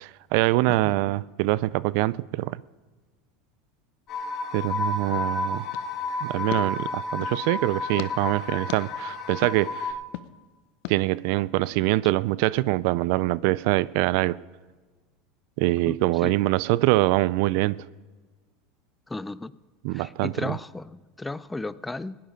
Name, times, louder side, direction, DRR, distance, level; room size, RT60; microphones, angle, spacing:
voice 1, 0.0-2.6 4.5-5.7 6.2-9.9 10.9-14.4 15.6-17.8 19.8-20.6, right 19 dB, 65° right, 0.3 m, -24 dB
voice 2, 0.7-1.0 15.9-16.0 16.2-16.3 19.1-19.5 19.9-22.2, left 2 dB, 10° left, 0.4 m, -35 dB
sound 1, 4.1-9.9, left 3 dB, 45° left, 2.6 m, -31 dB
sound 2, 5.7-7.4 8.0-8.1 8.7-8.8 9.4-9.6 10.1-10.3 10.8-11.0, left 15 dB, 65° left, 0.7 m, -38 dB
16.5 x 10.5 x 5.1 m
supercardioid pair, 105°, 0 cm